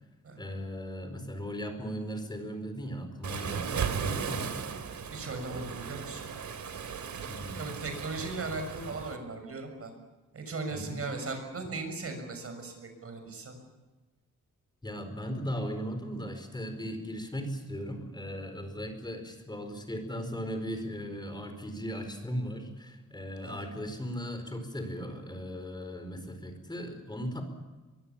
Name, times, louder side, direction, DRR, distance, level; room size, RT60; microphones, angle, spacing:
voice 1, 0.4-4.6 7.3-7.8 10.7-11.0 14.8-27.4, equal, 15° left, 6 dB, 4.5 m, -37 dB
Waves surf, 3.2-9.2, right 7 dB, 70° right, 2.6 m, -36 dB
voice 2, 5.1-6.3 7.5-9.9 10.3-12.8 13.0-13.6 23.4-23.6, right 3 dB, 50° right, 6 dB, 6.5 m, -38 dB
24.0 x 23.0 x 7.1 m, 1.2 s
wide cardioid pair, 140°, 30 cm